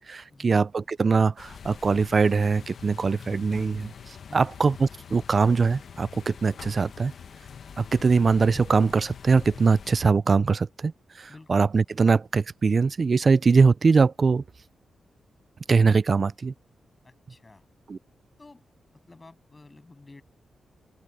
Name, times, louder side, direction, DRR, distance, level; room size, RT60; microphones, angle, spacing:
voice 1, 0.1-7.1 7.8-14.4 15.7-16.5 17.9-18.0, right 4 dB, 40° right, 0.3 m, -22 dB
sound 1, 1.4-10.1, left 7 dB, 60° left, 0.9 m, -44 dB
voice 2, 11.3-11.7 17.0-17.7 18.4-18.6 19.1-20.2, left 3 dB, 25° left, 7.7 m, -50 dB
open air
wide cardioid pair, 120°, 0 cm